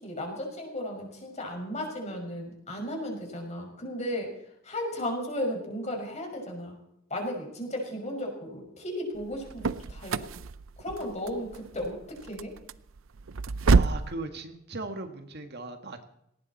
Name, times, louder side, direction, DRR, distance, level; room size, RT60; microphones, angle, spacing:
voice 1, 0.0-4.3 4.6-6.8 7.1-10.3 10.8-12.5, equal, 35° left, 1 dB, 6.0 m, -35 dB
sound 1, 9.2-14.1, right 4 dB, 80° right, 0.6 m, -28 dB
voice 2, 13.7-16.0, right 2 dB, 55° right, 6 dB, 1.9 m, -38 dB
18.5 x 18.0 x 4.3 m, 0.77 s
head